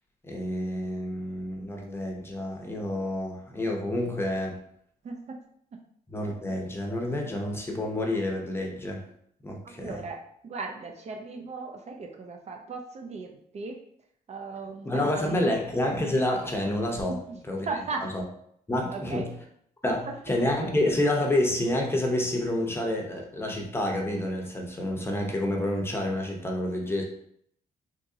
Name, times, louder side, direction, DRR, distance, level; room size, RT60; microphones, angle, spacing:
voice 1, 0.2-4.6 6.1-9.0 9.4-10.0 14.8-17.2 17.5-17.7 18.1-18.2 18.7-19.3 19.8-27.0, left 1 dB, 15° left, 1 dB, 0.7 m, -28 dB
voice 2, 5.0-5.4 5.7-5.8 9.6-10.2 10.4-13.8 14.3-15.6 17.1-18.1 18.9-19.3 20.1-20.2, right 4 dB, 40° right, 2 dB, 0.4 m, -37 dB
3.6 x 2.9 x 2.7 m, 0.69 s
cardioid pair, 125°, 17 cm